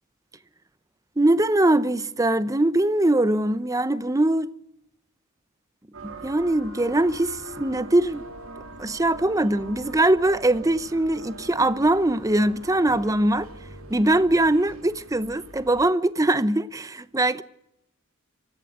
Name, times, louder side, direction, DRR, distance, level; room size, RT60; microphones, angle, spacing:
voice 1, 1.2-4.5 6.0-8.3 8.8-13.5 13.9-17.4, right 1 dB, 15° right, 0.8 m, -22 dB
sound 1, 5.9-15.9, right 2 dB, 80° right, 2.3 m, -42 dB
24.5 x 15.0 x 7.9 m
head